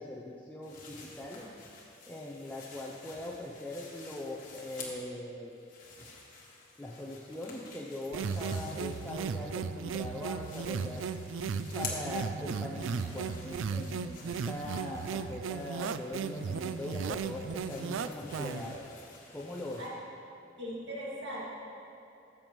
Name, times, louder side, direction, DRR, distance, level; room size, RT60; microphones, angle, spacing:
voice 1, 0.0-1.5 2.1-5.5 6.8-11.1 11.8-18.8 19.3-19.9, left 1 dB, 10° left, -4 dB, 0.5 m, -41 dB
sound 1, 0.6-5.2 5.5-9.7 10.0-19.9, left 4 dB, 45° left, 1.4 m, -49 dB
sound 2, 8.1-18.8, right 5 dB, 90° right, 0.3 m, -36 dB
voice 2, 20.6-21.4, equal, 65° right, -6 dB, 2.2 m, -39 dB
13.0 x 7.0 x 3.1 m, 2.9 s
head